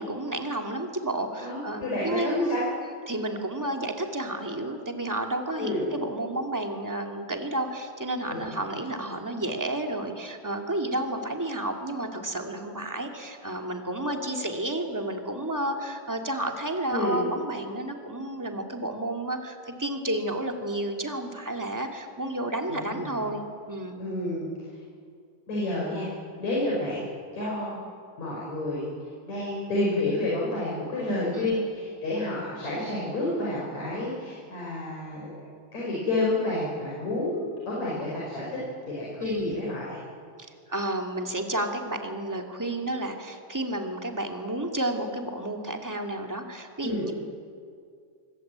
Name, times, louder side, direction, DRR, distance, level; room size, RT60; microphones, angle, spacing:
voice 1, 0.0-2.6 3.1-24.0 31.3-31.5 39.2-39.7 40.7-47.1, right 1 dB, 5° right, 3 dB, 1.8 m, -31 dB
voice 2, 1.4-2.6 5.6-5.8 8.3-8.6 16.9-17.2 22.7-23.0 24.0-24.5 25.5-26.1 26.4-27.0 27.3-27.8 28.2-28.9 29.3-35.4 35.7-38.6 38.9-40.0 46.8-47.0, left 1 dB, 55° left, -5 dB, 6.7 m, -29 dB
25.5 x 22.0 x 8.8 m, 2.2 s
omnidirectional pair, 3.8 m